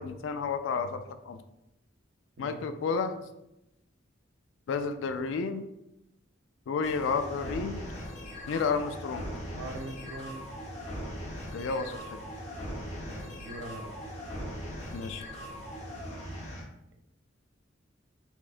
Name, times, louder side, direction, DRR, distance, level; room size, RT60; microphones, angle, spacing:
voice 1, 0.0-1.4 2.4-3.2 4.7-5.6 6.7-7.8 8.5-9.2 11.5-12.2 14.9-15.2, left 5 dB, 65° left, 9 dB, 0.3 m, -31 dB
sound 1, 6.8-16.6, equal, 35° left, 0.8 m, -40 dB
voice 2, 9.5-10.5 13.0-13.9, right 2 dB, 90° right, 5 dB, 0.5 m, -42 dB
4.3 x 2.2 x 2.4 m, 0.87 s
head